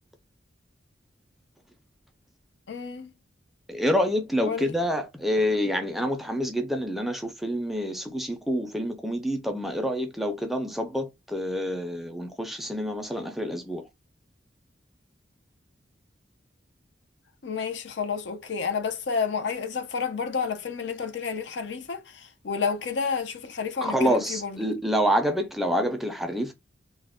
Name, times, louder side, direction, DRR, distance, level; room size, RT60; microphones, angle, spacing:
voice 1, 2.7-3.1 4.5-4.7 17.4-24.7, left 5 dB, 80° left, 0.5 m, -30 dB
voice 2, 3.7-13.8 23.8-26.5, equal, ahead, 0.4 m, -27 dB
2.3 x 2.1 x 3.5 m
head